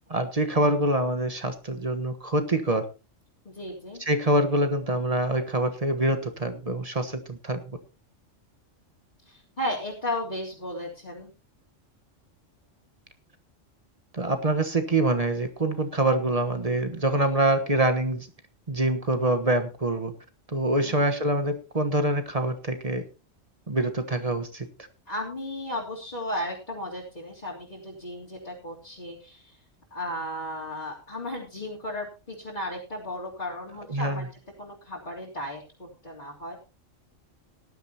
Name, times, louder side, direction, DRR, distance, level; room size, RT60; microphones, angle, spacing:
voice 1, 0.1-2.8 4.1-7.6 14.1-18.3 18.7-20.1 20.5-23.0 23.7-24.7 33.9-34.3, right 1 dB, 30° right, 7 dB, 1.3 m, -25 dB
voice 2, 3.4-4.0 9.2-11.3 20.8-21.3 25.1-29.6 29.9-34.3 34.6-36.5, left 1 dB, 40° left, -6 dB, 3.3 m, -35 dB
18.0 x 12.0 x 2.9 m, 0.30 s
omnidirectional pair, 1.3 m